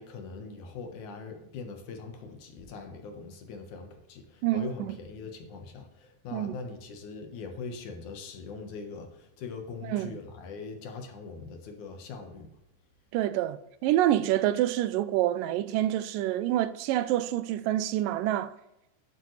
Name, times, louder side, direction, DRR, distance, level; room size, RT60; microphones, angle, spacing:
voice 1, 0.0-12.5, left 4 dB, 70° left, 2.7 m, -41 dB
voice 2, 4.4-4.9 6.3-6.6 9.9-10.1 13.1-18.5, right 13 dB, 85° right, 2.3 m, -27 dB
11.5 x 9.3 x 3.3 m
omnidirectional pair, 3.8 m